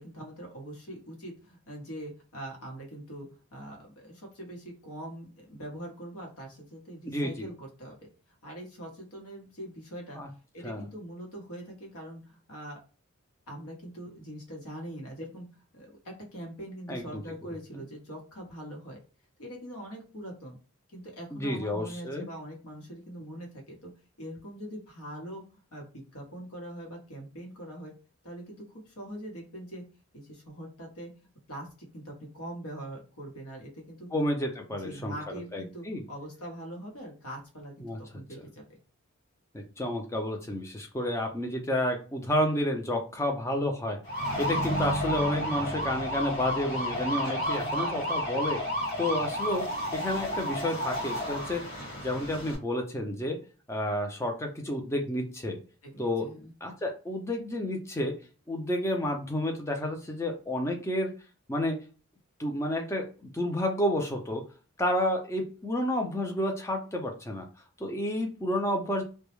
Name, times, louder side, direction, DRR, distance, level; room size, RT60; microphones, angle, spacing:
voice 1, 0.0-7.9 8.4-10.2 10.5-12.8 13.5-19.0 19.4-20.6 20.9-23.9 24.2-27.9 28.2-29.8 30.1-31.1 31.5-34.1 34.8-38.8 55.8-56.5, right 1 dB, 85° left, 1 dB, 0.9 m, -43 dB
voice 2, 7.1-7.5 10.1-10.3 10.6-10.9 16.9-17.1 21.3-22.3 34.1-35.1 35.5-36.0 37.8-38.0 39.5-44.0 44.4-48.6 49.0-51.7 52.0-53.4 53.7-55.6 56.0-56.3 56.6-58.2 58.5-61.1 61.5-61.8 62.4-64.4 64.8-67.5 67.8-69.0, left 1 dB, 10° left, 2 dB, 0.4 m, -30 dB
sound 1, 44.1-52.6, equal, 45° left, 1.2 m, -31 dB
2.2 x 2.0 x 3.0 m, 0.35 s
head